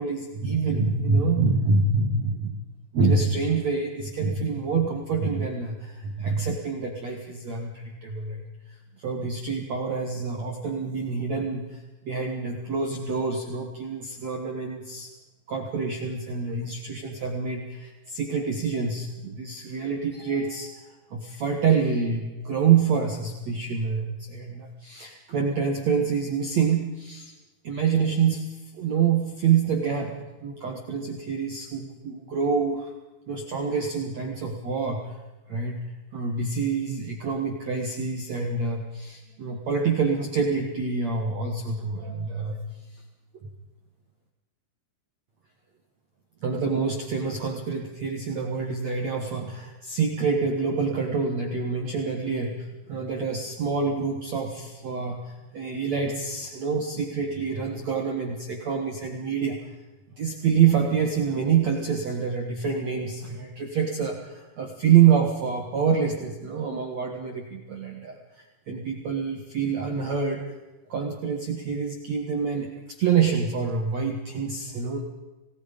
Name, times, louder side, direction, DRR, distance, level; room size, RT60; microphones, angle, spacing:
voice 1, 0.0-2.6 2.9-8.4 8.7-15.1 15.5-27.3 27.6-32.9 33.3-35.1 35.5-35.8 36.1-42.6 43.4-43.5 46.4-59.6 60.2-70.5 70.9-75.0, right 5 dB, 75° right, 2 dB, 1.5 m, -26 dB
29.0 x 18.5 x 5.3 m, 1.2 s
omnidirectional pair, 6.0 m